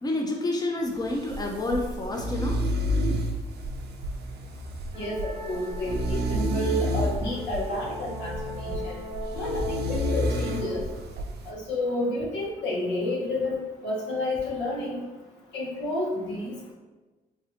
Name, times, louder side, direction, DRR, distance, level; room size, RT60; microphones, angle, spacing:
voice 1, 0.0-2.7, left 2 dB, 20° left, 0 dB, 0.6 m, -29 dB
sound 1, 0.9-11.5, equal, 65° right, 0.5 m, -30 dB
voice 2, 4.9-9.0 9.3-10.8 11.4-13.6 13.8-15.0 15.5-16.7, left 1 dB, 80° left, -4 dB, 1.0 m, -30 dB
sound 2, 4.9-10.8, left 2 dB, 25° right, 0.9 m, -37 dB
3.2 x 2.5 x 2.9 m, 1.2 s
supercardioid pair, 55°, 18 cm